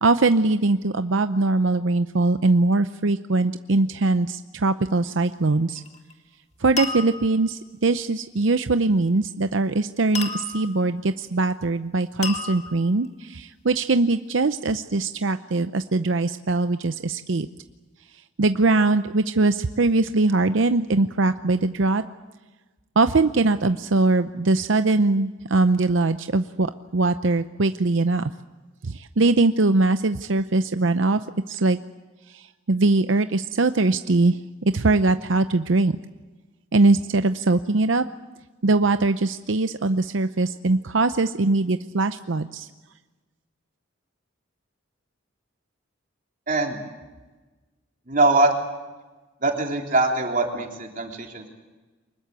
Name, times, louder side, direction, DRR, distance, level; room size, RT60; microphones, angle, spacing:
voice 1, 0.0-5.8 6.6-17.5 18.4-22.0 23.0-28.3 28.8-31.2 31.5-31.8 32.3-34.4 34.7-36.0 36.7-38.0 38.6-42.7, right 3 dB, 70° right, 10 dB, 0.7 m, -21 dB
sound 1, 5.7-6.1 6.8-7.5 10.1-10.9 12.2-13.1, left 4 dB, 35° left, 2.0 m, -32 dB
voice 2, 46.5-46.8 48.1-48.6 49.4-51.5, right 2 dB, 40° right, 2 dB, 3.5 m, -22 dB
24.5 x 21.0 x 8.2 m, 1.2 s
head